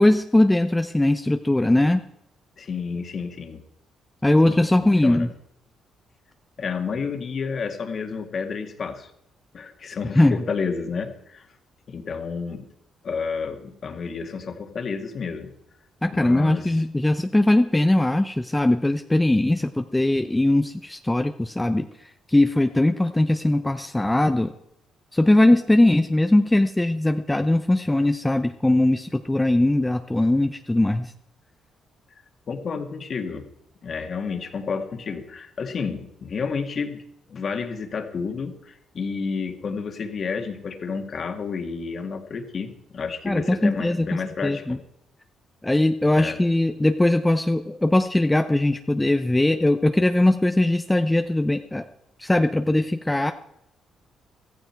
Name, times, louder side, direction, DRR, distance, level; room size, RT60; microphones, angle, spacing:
voice 1, 0.0-2.0 4.2-5.3 10.1-10.4 16.0-21.9 22.3-24.5 25.1-31.1 43.2-44.8 45.6-51.8 52.2-53.3, left 1 dB, 10° left, 8 dB, 0.7 m, -20 dB
voice 2, 2.6-3.6 4.4-5.3 6.6-9.1 9.5-11.5 11.9-12.7 13.0-15.5 16.1-16.8 32.5-33.4 33.8-37.0 37.3-44.8 46.1-46.4, left 5 dB, 50° left, 5 dB, 2.1 m, -30 dB
15.5 x 14.5 x 4.6 m, 0.80 s
cardioid pair, 90°, 0 cm